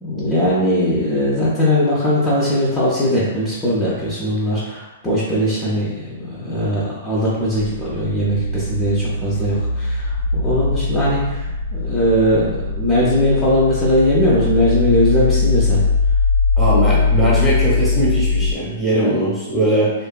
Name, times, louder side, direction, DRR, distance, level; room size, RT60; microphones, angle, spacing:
voice 1, 0.0-11.4 11.7-15.8 16.9-17.1, equal, 20° left, -9 dB, 0.6 m, -19 dB
sound 1, 7.6-18.5, left 3 dB, 85° left, 0.3 m, -20 dB
voice 2, 16.6-19.9, right 1 dB, ahead, -9 dB, 1.0 m, -19 dB
2.6 x 2.3 x 2.2 m, 1.1 s
hypercardioid pair, 115°, 0 cm